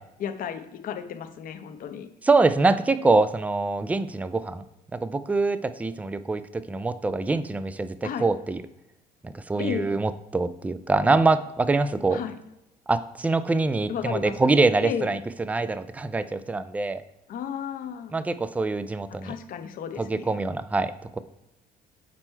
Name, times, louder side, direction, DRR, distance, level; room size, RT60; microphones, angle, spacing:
voice 1, 0.2-2.1 8.0-8.3 9.6-9.9 12.1-12.4 13.9-14.5 14.8-15.2 17.3-18.1 19.2-20.4, left 8 dB, 55° left, 8 dB, 0.7 m, -33 dB
voice 2, 2.2-4.6 4.9-8.6 9.2-12.2 12.9-15.2 15.5-17.0 18.1-19.3 20.0-21.2, right 3 dB, 10° right, 13 dB, 0.3 m, -24 dB
6.1 x 4.4 x 4.4 m, 0.90 s
cardioid pair, 110°, 17 cm